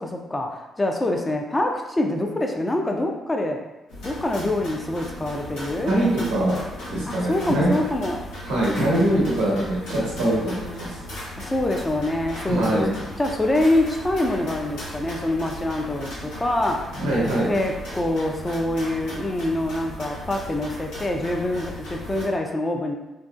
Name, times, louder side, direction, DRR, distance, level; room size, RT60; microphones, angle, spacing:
voice 1, 0.0-3.6 4.0-6.0 7.1-8.2 11.4-12.8 13.2-16.9 17.5-23.0, left 1 dB, 20° left, 2 dB, 0.4 m, -25 dB
sound 1, 3.9-22.2, left 1 dB, 80° left, 0.8 m, -37 dB
voice 2, 5.9-6.6 6.9-7.7 8.4-10.9 12.4-12.9 16.9-17.5, right 1 dB, 85° right, -7 dB, 0.9 m, -22 dB
2.6 x 2.1 x 2.3 m, 1.0 s
hypercardioid pair, 50°, 0 cm